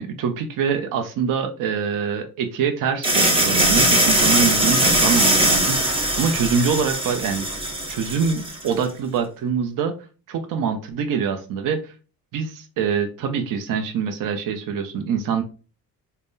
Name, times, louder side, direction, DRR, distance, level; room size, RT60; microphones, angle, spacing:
voice 1, 0.0-7.5 7.9-9.9 10.3-11.9 12.3-15.4, right 6 dB, 65° right, 5 dB, 0.6 m, -24 dB
sound 1, 3.0-8.7, right 1 dB, 15° right, 0.9 m, -20 dB
3.5 x 2.1 x 3.9 m, 0.35 s
cardioid pair, 110°, 36 cm